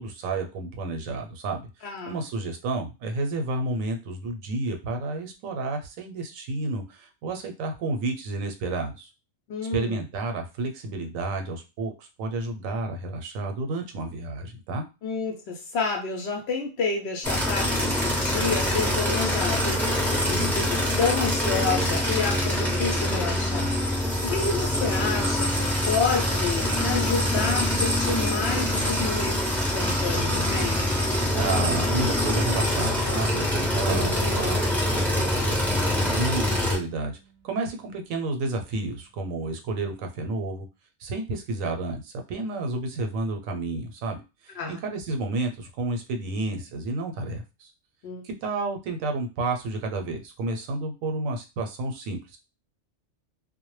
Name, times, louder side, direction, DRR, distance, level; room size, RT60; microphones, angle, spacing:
voice 1, 0.0-9.1 9.7-14.8 31.3-37.2 37.4-40.7 41.0-47.7 48.2-52.2, right 2 dB, 85° right, 5 dB, 1.0 m, -31 dB
voice 2, 1.8-2.2 9.5-10.0 15.0-30.9 44.6-44.8 48.0-48.2, left 4 dB, 65° left, 2 dB, 0.7 m, -30 dB
sound 1, 17.2-36.8, left 1 dB, ahead, 0.5 m, -25 dB
sound 2, 33.9-38.9, right 7 dB, 40° right, 0.6 m, -44 dB
2.1 x 2.1 x 3.0 m, 0.28 s
omnidirectional pair, 1.3 m